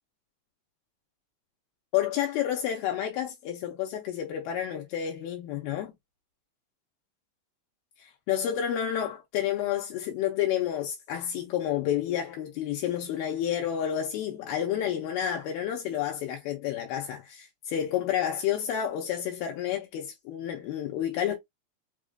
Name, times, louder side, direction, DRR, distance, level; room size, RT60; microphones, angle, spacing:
voice 1, 1.9-5.9 8.0-21.4, left 10 dB, 80° left, 2.5 m, -30 dB
6.2 x 2.4 x 2.2 m
omnidirectional pair, 4.3 m